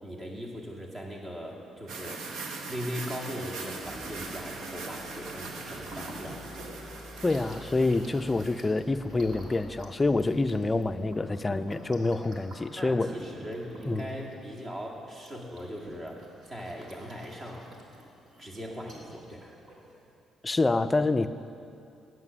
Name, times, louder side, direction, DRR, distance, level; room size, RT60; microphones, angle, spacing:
voice 1, 0.0-2.3 2.7-6.4 12.8-17.7 18.4-19.6, equal, 35° right, -2 dB, 2.0 m, -39 dB
sound 1, 1.9-8.6, right 3 dB, 85° right, 0.9 m, -41 dB
sound 2, 3.8-11.9, left 1 dB, ahead, 1.6 m, -49 dB
sound 3, 4.6-20.1, right 1 dB, 65° right, 1.8 m, -49 dB
voice 2, 7.2-13.1 13.9-14.0 20.4-21.3, left 2 dB, 20° left, 11 dB, 0.4 m, -27 dB
9.7 x 7.8 x 6.1 m, 2.6 s
cardioid pair, 90°, 0 cm